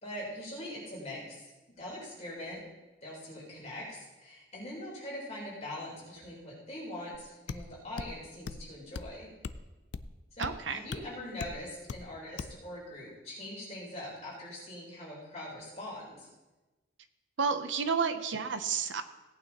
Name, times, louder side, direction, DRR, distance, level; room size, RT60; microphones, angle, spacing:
voice 1, 0.0-2.6 3.0-9.3 10.3-16.3, left 1 dB, 35° left, -6 dB, 4.1 m, -42 dB
sound 1, 7.1-7.2 7.5-7.7 8.0-8.1 8.5-8.7 9.0-9.1 9.4-9.6 9.9-10.1 10.4-10.5 10.9-11.0 11.4-11.6 11.9-12.1 12.4-12.6, left 5 dB, 65° left, 0.4 m, -38 dB
voice 2, 10.4-10.8 17.4-19.0, right 5 dB, 80° right, 10 dB, 0.7 m, -31 dB
17.5 x 8.9 x 3.0 m, 1.1 s
head